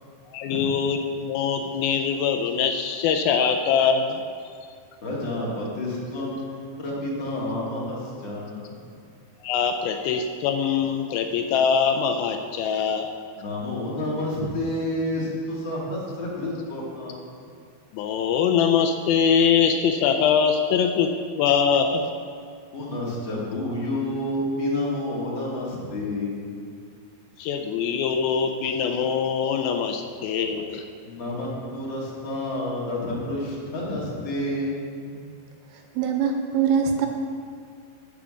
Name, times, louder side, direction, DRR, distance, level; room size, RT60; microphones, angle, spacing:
voice 1, 0.3-4.2 9.4-13.1 17.9-22.1 27.4-30.8, left 7 dB, 85° left, 6 dB, 2.1 m, -23 dB
voice 2, 5.0-9.0 13.4-17.4 22.7-26.7 31.0-35.2, left 1 dB, 40° left, -5 dB, 2.0 m, -30 dB
voice 3, 36.0-37.1, right 7 dB, 85° right, 4 dB, 2.6 m, -22 dB
8.5 x 7.0 x 6.4 m, 2.2 s
omnidirectional pair, 4.8 m